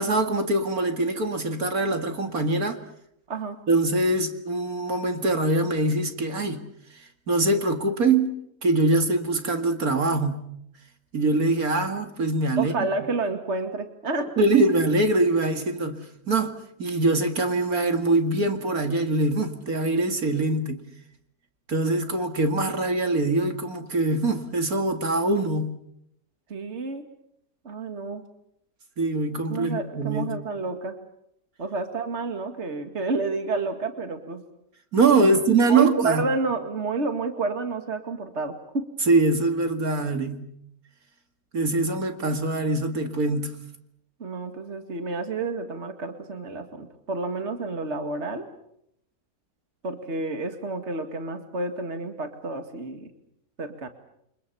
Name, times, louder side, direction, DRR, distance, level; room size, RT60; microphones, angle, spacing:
voice 1, 0.0-2.8 3.7-6.6 7.3-8.3 8.6-10.4 11.1-12.7 14.4-16.0 16.3-16.5 16.8-20.8 21.7-25.7 29.0-30.3 34.9-36.2 39.1-40.4 41.5-43.5, right 2 dB, 65° right, 6 dB, 2.7 m, -23 dB
voice 2, 12.6-14.6 26.5-27.0 27.6-28.2 29.5-31.0 31.6-34.4 35.2-35.4 35.7-38.9 44.2-48.5 49.8-53.1 53.6-53.9, right 3 dB, 45° right, 7 dB, 2.4 m, -30 dB
29.5 x 25.0 x 7.1 m, 0.76 s
omnidirectional pair, 1.7 m